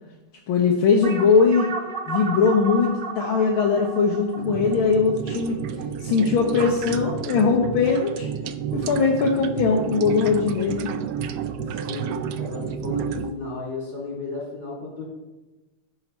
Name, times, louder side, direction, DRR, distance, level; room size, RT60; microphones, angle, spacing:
voice 1, 0.5-1.7 2.1-5.6 6.0-8.3 8.7-10.9, left 5 dB, 70° left, 1 dB, 1.7 m, -20 dB
sound 1, 1.0-5.9, right 4 dB, 45° right, 0.7 m, -34 dB
sound 2, 4.4-13.3, right 7 dB, 90° right, 0.8 m, -30 dB
voice 2, 11.7-15.0, left 3 dB, 30° left, -4 dB, 3.9 m, -34 dB
10.0 x 7.0 x 4.3 m, 1.1 s
omnidirectional pair, 2.4 m